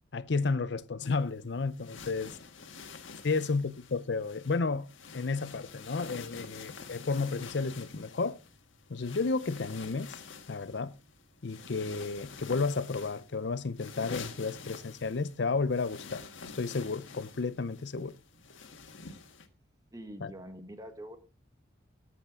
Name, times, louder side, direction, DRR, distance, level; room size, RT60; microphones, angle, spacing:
voice 1, 0.1-2.4 3.2-4.9 5.1-8.4 8.9-10.2 10.5-10.9 11.4-16.2 16.5-18.2 20.2-20.3, left 4 dB, 65° left, 0.6 m, -32 dB
sound 1, 1.0-19.5, left 5 dB, 85° left, 1.6 m, -48 dB
voice 2, 19.9-21.2, equal, 20° right, 1.5 m, -45 dB
18.0 x 7.9 x 3.7 m
head